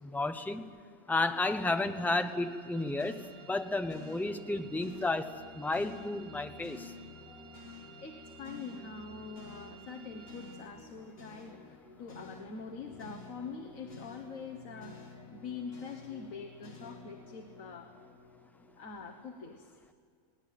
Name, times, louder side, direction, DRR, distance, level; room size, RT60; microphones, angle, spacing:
voice 1, 0.0-0.7 1.1-3.2 3.5-6.9, left 2 dB, ahead, 7 dB, 0.7 m, -32 dB
sound 1, 1.3-10.6, right 8 dB, 45° right, 5.5 m, -56 dB
sound 2, 3.0-19.3, left 4 dB, 45° left, 2.1 m, -51 dB
voice 2, 7.3-7.6 8.0-17.9 18.8-19.8, left 5 dB, 70° left, 4 dB, 1.8 m, -45 dB
20.5 x 18.5 x 9.2 m, 2.1 s
omnidirectional pair, 1.5 m